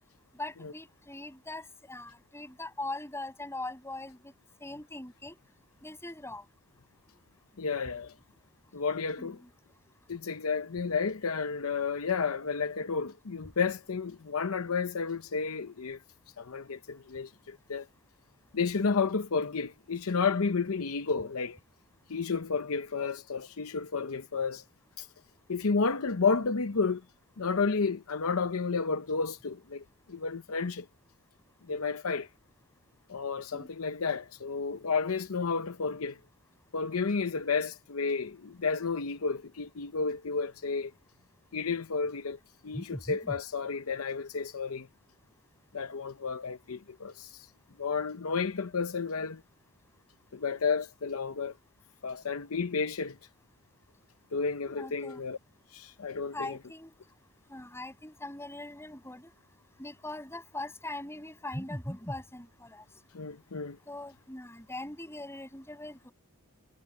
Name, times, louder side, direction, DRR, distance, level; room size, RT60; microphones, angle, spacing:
voice 1, 0.3-4.3 4.6-5.4 5.8-6.4 9.2-9.5 33.5-33.7 42.7-43.3 54.6-55.2 56.3-56.9 57.5-59.3 59.8-62.8 63.9-66.1, left 2 dB, 10° left, 6.5 m, -41 dB
voice 2, 7.6-8.1 8.7-9.4 10.1-16.0 16.4-17.9 18.5-21.6 22.1-24.6 25.0-25.1 25.5-27.0 27.4-30.9 31.7-32.3 33.1-36.2 36.7-40.9 41.5-42.4 42.6-44.9 45.7-47.5 47.8-49.4 50.3-51.5 52.0-53.2 54.3-55.4 55.7-56.6 63.1-63.8, left 5 dB, 65° left, 0.8 m, -31 dB
head